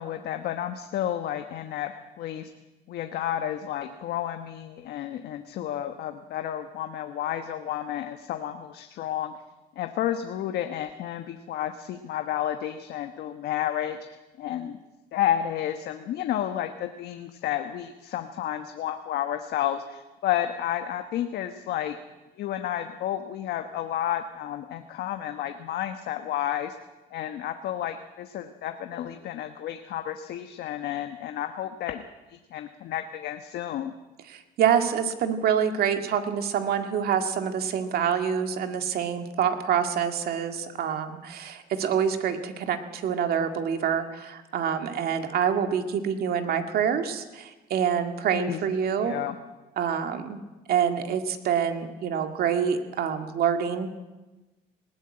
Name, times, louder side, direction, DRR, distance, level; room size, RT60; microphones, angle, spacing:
voice 1, 0.0-2.5 2.9-9.3 9.8-14.8 15.1-22.0 22.4-26.8 27.1-32.0 32.3-33.9 48.3-48.6 49.0-49.4, left 11 dB, 70° left, 7 dB, 1.1 m, -31 dB
voice 2, 34.3-49.2 49.8-50.4 50.7-53.9, right 8 dB, 65° right, 7 dB, 2.0 m, -26 dB
19.5 x 15.5 x 8.7 m, 1.1 s
cardioid pair, 110°, 17 cm